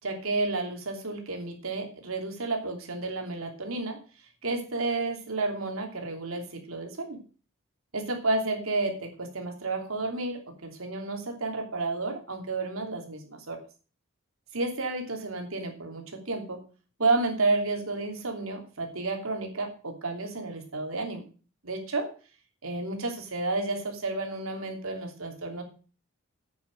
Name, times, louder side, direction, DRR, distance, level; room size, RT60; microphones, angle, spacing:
voice 1, 0.0-4.0 4.4-7.2 7.9-13.6 14.5-16.6 17.0-21.2 21.6-22.1 22.6-25.6, right 3 dB, 85° right, 3 dB, 3.0 m, -31 dB
9.5 x 6.5 x 7.7 m, 0.38 s
head